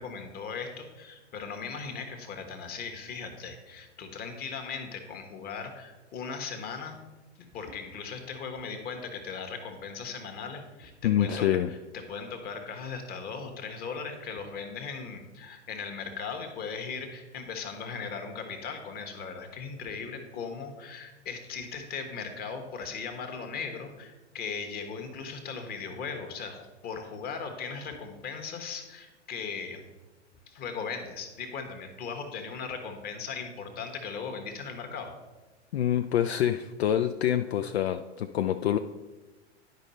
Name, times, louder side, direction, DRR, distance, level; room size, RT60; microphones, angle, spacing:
voice 1, 0.0-6.9 7.5-29.8 30.5-35.1, left 5 dB, 25° left, 5 dB, 1.3 m, -38 dB
voice 2, 11.0-11.7 35.7-38.8, left 10 dB, 65° left, 8 dB, 0.5 m, -26 dB
10.5 x 5.3 x 4.1 m, 1.2 s
figure-of-eight pair, 100°, 35 cm